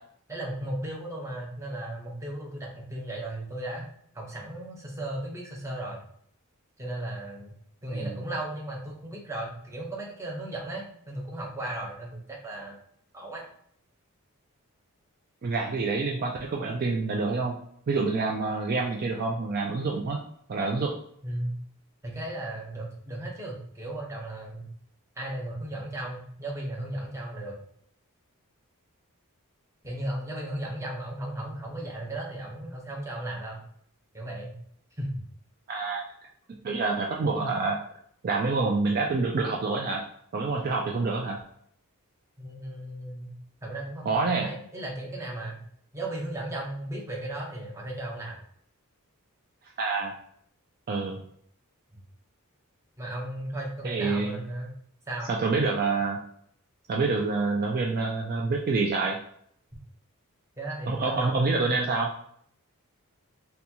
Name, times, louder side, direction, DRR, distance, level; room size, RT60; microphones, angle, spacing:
voice 1, 0.3-3.9 4.1-6.0 6.8-7.5 7.8-12.8 13.1-13.4 21.2-21.6 22.0-24.7 25.2-27.6 29.8-33.6 34.1-34.5 35.0-35.2 42.4-43.3 43.6-45.6 45.9-48.4 53.0-54.7 55.1-55.3 60.6-61.7, right 1 dB, 15° right, -2 dB, 0.8 m, -35 dB
voice 2, 15.4-17.6 17.9-20.2 20.5-20.9 35.7-36.0 36.6-37.8 38.2-40.0 40.3-41.4 44.1-44.5 49.8-50.1 50.9-51.2 53.8-54.4 55.3-56.2 56.9-59.2 60.9-62.1, right 3 dB, 45° right, 0 dB, 0.4 m, -27 dB
3.9 x 2.3 x 2.8 m, 0.66 s
head